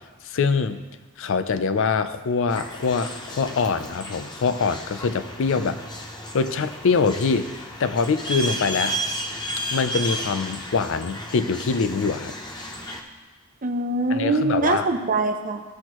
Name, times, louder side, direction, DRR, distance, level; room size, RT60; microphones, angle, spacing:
voice 1, 0.2-0.8 1.2-5.8 6.3-9.0 9.7-12.3 14.1-14.9, left 5 dB, 60° left, 11 dB, 0.4 m, -24 dB
sound 1, 2.5-13.0, right 1 dB, 20° left, 0.7 m, -33 dB
voice 2, 13.6-15.6, right 3 dB, 40° right, 5 dB, 0.7 m, -23 dB
14.0 x 6.0 x 3.0 m, 1.3 s
head